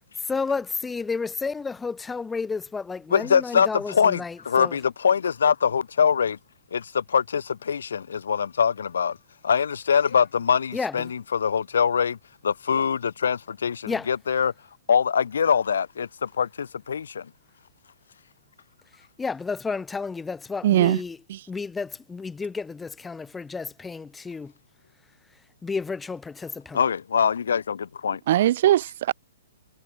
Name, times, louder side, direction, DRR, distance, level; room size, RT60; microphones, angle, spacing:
voice 1, 0.2-4.8 10.7-11.1 13.9-14.1 19.2-21.2 21.5-24.5 25.6-26.8, left 4 dB, 5° left, 2.2 m, -31 dB
voice 2, 3.1-6.4 6.7-9.2 9.4-12.2 12.4-14.5 14.9-17.3 26.7-28.2, left 7 dB, 85° left, 1.3 m, -23 dB
voice 3, 20.6-21.0 21.3-21.4 28.3-29.1, right 13 dB, 50° right, 0.4 m, -20 dB
hypercardioid pair, 160°, 0 cm